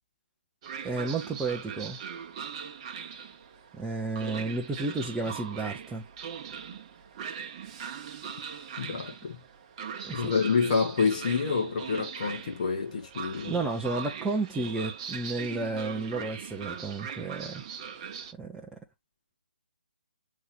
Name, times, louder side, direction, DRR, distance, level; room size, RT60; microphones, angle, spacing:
Train, 0.6-18.3, right 7 dB, 30° right, 0.9 m, -40 dB
voice 1, 0.8-2.0 3.7-6.0 10.0-10.3 13.5-17.6 18.4-18.8, right 3 dB, 5° right, 0.6 m, -32 dB
voice 2, 8.8-9.4 10.1-13.6, left 5 dB, 40° left, 1.8 m, -28 dB
8.0 x 3.6 x 3.4 m
figure-of-eight pair, 140°, 6 cm